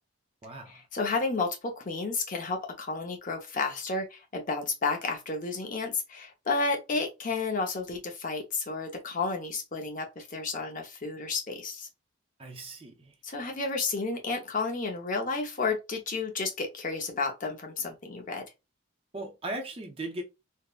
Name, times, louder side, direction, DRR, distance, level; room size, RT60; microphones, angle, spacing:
voice 1, 0.4-0.8 12.4-13.1 19.1-20.2, right 2 dB, 25° right, 0.5 m, -38 dB
voice 2, 0.9-11.9 13.2-18.4, left 3 dB, 40° left, 0.6 m, -31 dB
3.4 x 2.0 x 2.3 m
head